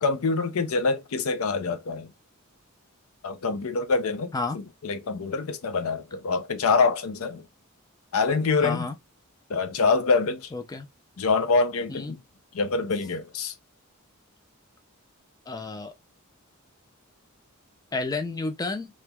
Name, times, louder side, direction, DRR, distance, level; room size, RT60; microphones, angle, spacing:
voice 1, 0.0-2.1 3.2-7.4 8.1-8.9 9.5-10.5 11.2-12.2 12.5-13.5, left 4 dB, 70° left, 0.5 m, -25 dB
voice 2, 8.6-8.9 10.5-10.9 11.9-12.2 15.5-15.9 17.9-18.9, left 3 dB, 15° left, 0.4 m, -31 dB
3.1 x 3.0 x 2.2 m
head